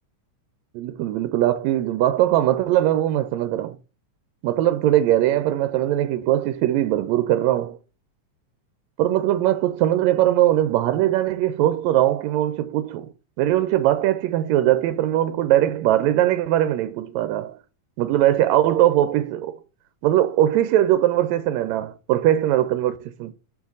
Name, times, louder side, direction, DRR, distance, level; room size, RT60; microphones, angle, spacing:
voice 1, 0.7-3.7 4.4-7.8 9.0-13.1 13.4-17.6 18.0-19.6 20.0-23.3, right 13 dB, 80° right, 1.7 m, -20 dB
6.9 x 4.8 x 3.9 m
omnidirectional pair, 3.4 m